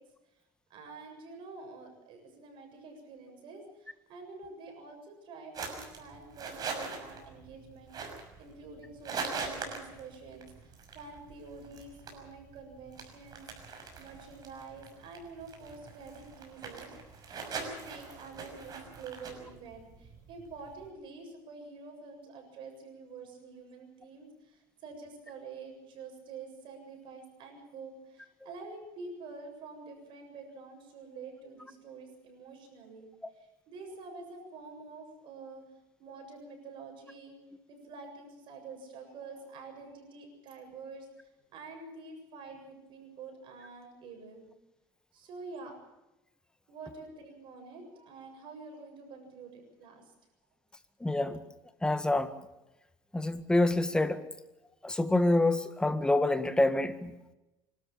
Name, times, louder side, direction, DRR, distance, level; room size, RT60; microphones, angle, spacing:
voice 1, 0.7-13.5 14.0-17.0 17.5-33.1 33.3-35.6 36.0-37.4 37.7-44.5 45.1-45.7 46.7-50.1, right 4 dB, 60° right, 4 dB, 7.6 m, -47 dB
sound 1, 5.5-20.9, right 4 dB, 40° right, 6.1 m, -43 dB
voice 2, 51.0-51.4 51.8-52.3 53.1-54.2 54.8-57.3, left 2 dB, 10° left, 10 dB, 1.9 m, -27 dB
25.5 x 13.0 x 8.7 m, 0.96 s
supercardioid pair, 95°, 10 cm